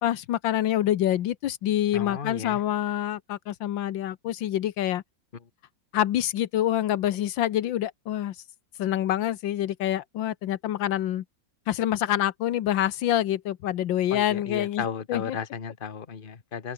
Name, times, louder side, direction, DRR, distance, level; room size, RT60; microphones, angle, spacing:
voice 1, 0.0-5.0 5.9-8.3 8.8-11.2 11.7-14.8 15.1-15.4, left 12 dB, 90° left, 1.7 m, -26 dB
voice 2, 1.9-2.6 14.1-16.7, left 6 dB, 30° left, 1.4 m, -34 dB
open air
omnidirectional pair, 2.0 m